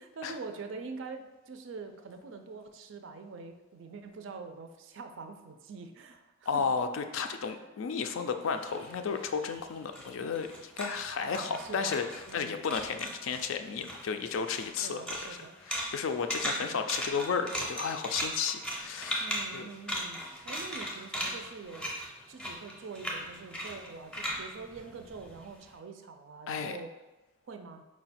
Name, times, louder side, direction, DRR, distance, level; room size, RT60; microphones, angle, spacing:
voice 1, 0.0-6.7 11.1-12.6 14.8-15.6 16.4-16.8 19.2-21.9 22.3-26.9 27.4-27.8, right 4 dB, 60° right, 7 dB, 0.4 m, -45 dB
voice 2, 6.5-12.1 12.3-15.0 15.7-19.7 26.5-26.8, left 6 dB, 65° left, 8 dB, 0.3 m, -33 dB
sound 1, 8.5-12.4 12.7-13.5 13.8-25.6, equal, 5° left, 0.6 m, -38 dB
4.7 x 2.2 x 4.1 m, 1.1 s
head